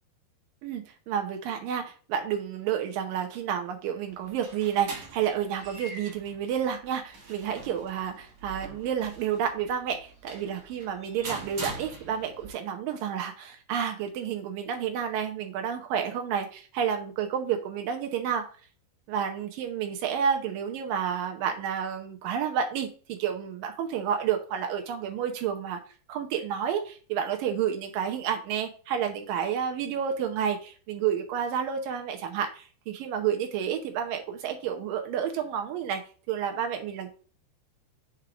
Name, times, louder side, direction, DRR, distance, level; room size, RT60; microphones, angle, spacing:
voice 1, 0.6-18.4 19.1-25.8 26.1-36.0 36.3-37.1, right 8 dB, 80° right, 4 dB, 2.0 m, -30 dB
sound 1, 4.1-12.5, right 3 dB, 50° right, 2.2 m, -43 dB
7.2 x 3.5 x 4.8 m, 0.39 s
omnidirectional pair, 5.2 m